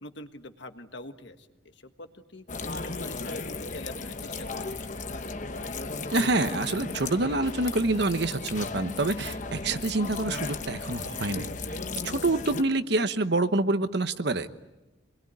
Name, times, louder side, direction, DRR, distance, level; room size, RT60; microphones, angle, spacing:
voice 1, 0.0-5.1, left 1 dB, 60° left, 8 dB, 1.6 m, -44 dB
sound 1, 2.5-12.6, left 3 dB, 40° left, 1.0 m, -35 dB
voice 2, 6.1-11.5 11.7-11.8 12.0-14.5, right 2 dB, 55° right, 11 dB, 1.1 m, -27 dB
26.0 x 21.5 x 9.6 m, 1.0 s
head